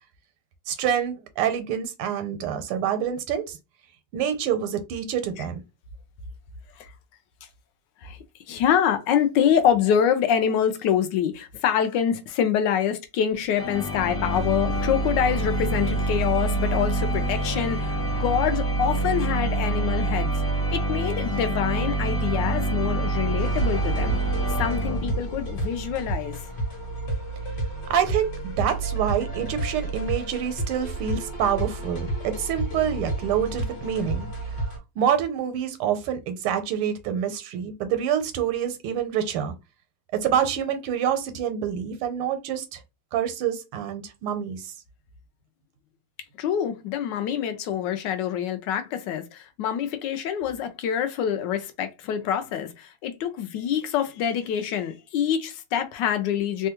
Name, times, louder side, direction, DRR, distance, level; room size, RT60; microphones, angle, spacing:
voice 1, 0.7-3.6 4.1-5.6 27.9-34.3 35.0-39.5 40.1-42.8 43.1-44.7, right 9 dB, 80° right, 1.5 m, -27 dB
voice 2, 8.5-17.9 18.2-20.3 20.7-24.2 24.6-26.4 46.4-56.7, left 9 dB, 75° left, 1.0 m, -25 dB
sound 1, 13.5-25.5, right 2 dB, 35° left, 1.0 m, -26 dB
sound 2, 23.4-34.8, right 2 dB, 50° left, 1.4 m, -31 dB
3.4 x 2.2 x 2.8 m
omnidirectional pair, 2.4 m